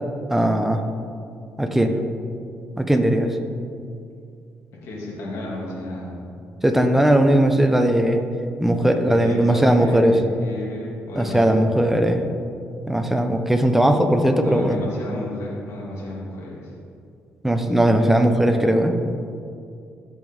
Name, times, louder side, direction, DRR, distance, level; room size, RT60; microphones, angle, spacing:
voice 1, 0.3-0.8 1.6-2.0 2.8-3.4 6.6-8.2 8.6-10.2 11.2-12.2 12.9-14.8 17.4-18.9, right 1 dB, 5° right, 5 dB, 0.9 m, -18 dB
voice 2, 4.8-6.2 8.9-12.0 14.4-16.7 18.7-18.9, left 1 dB, 75° left, -5 dB, 2.5 m, -33 dB
15.5 x 5.2 x 3.7 m, 2.4 s
cardioid pair, 85°, 5 cm